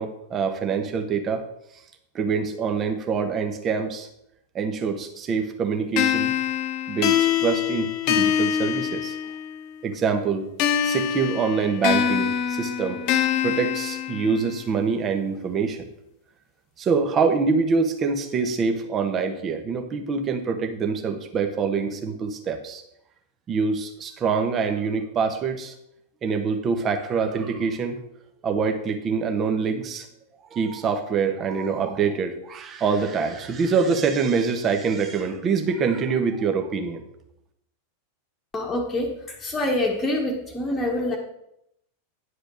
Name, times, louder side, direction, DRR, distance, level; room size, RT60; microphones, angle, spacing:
voice 1, 0.0-1.4 2.1-4.1 4.5-6.3 6.9-9.2 9.8-10.5 10.8-13.0 13.4-15.9 16.8-22.8 23.5-25.7 26.2-28.0 28.4-30.1 30.5-37.0, right 5 dB, 25° right, 6 dB, 1.3 m, -25 dB
sound 1, 6.0-9.6 10.6-14.6, left 9 dB, 40° left, 0.8 m, -24 dB
voice 2, 38.5-41.2, left 1 dB, 10° left, -4 dB, 1.5 m, -26 dB
10.5 x 5.0 x 6.3 m, 0.78 s
figure-of-eight pair, 90°, 0 cm